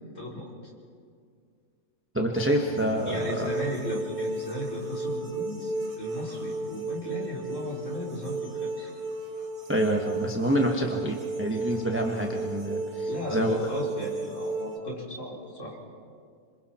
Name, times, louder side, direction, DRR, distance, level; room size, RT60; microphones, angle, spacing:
voice 1, 0.1-0.5 3.0-8.9 13.1-15.8, equal, 40° left, -4 dB, 4.9 m, -36 dB
voice 2, 2.1-3.5 9.7-13.7, equal, 5° right, 1 dB, 1.2 m, -27 dB
sound 1, 2.3-14.8, right 2 dB, 70° right, 4.0 m, -34 dB
28.0 x 26.0 x 4.5 m, 2.2 s
omnidirectional pair, 2.0 m